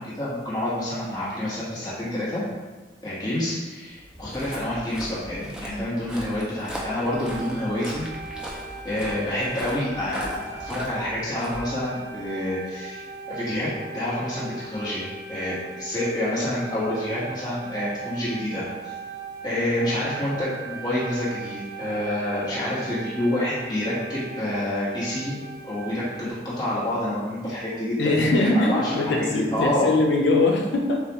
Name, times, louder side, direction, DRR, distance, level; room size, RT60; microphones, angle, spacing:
voice 1, 0.0-2.4 3.0-8.1 8.4-8.6 8.8-18.9 19.4-25.4 25.6-29.9, left 1 dB, 25° left, -10 dB, 1.3 m, -28 dB
Walk footsteps, 4.0-12.3, equal, 5° right, 0.5 m, -39 dB
sound 1, 6.7-26.3, right 4 dB, 50° right, 1.0 m, -39 dB
voice 2, 28.0-31.0, left 2 dB, 80° left, 1 dB, 0.6 m, -21 dB
6.8 x 2.4 x 3.0 m, 1.2 s
head